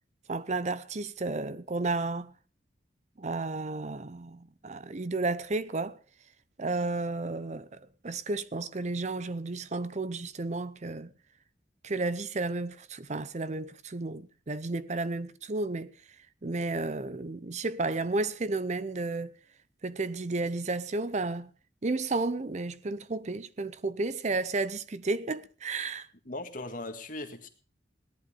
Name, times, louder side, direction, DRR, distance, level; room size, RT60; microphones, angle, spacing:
voice 1, 0.3-2.3 3.2-6.0 6.6-11.1 11.8-15.9 16.4-19.3 19.8-21.5 21.8-26.1, right 3 dB, 40° right, 0.6 m, -32 dB
voice 2, 26.3-27.5, left 2 dB, 45° left, 1.9 m, -38 dB
18.0 x 11.0 x 5.2 m
head